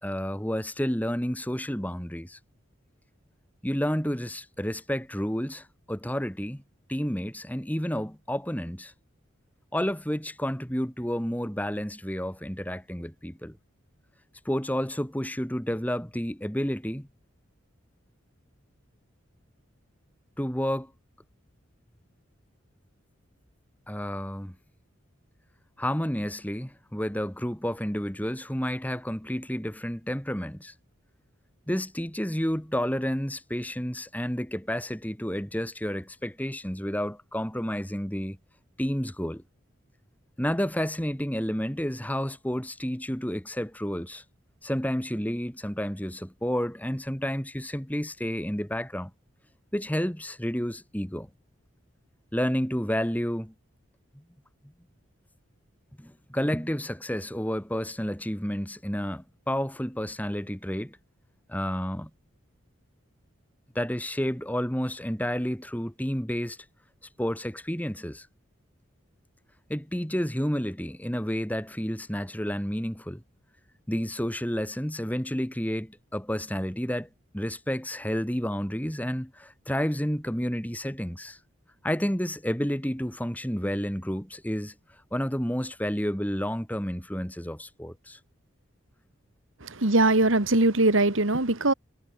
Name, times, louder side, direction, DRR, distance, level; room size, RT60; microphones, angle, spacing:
voice 1, 0.0-2.4 3.6-6.6 6.9-8.9 9.7-13.6 14.5-17.1 20.4-20.9 23.9-24.6 25.8-30.7 31.7-38.4 38.8-39.4 40.4-44.2 44.6-49.1 49.7-51.3 52.3-53.5 54.1-54.2 56.0-61.0 61.5-62.1 63.7-66.6 67.2-68.3 69.7-73.2 73.9-77.1 77.3-81.4 81.8-84.7 85.1-88.2, equal, 10° left, 2.3 m, -30 dB
voice 2, 89.6-91.7, right 2 dB, 75° right, 2.3 m, -21 dB
head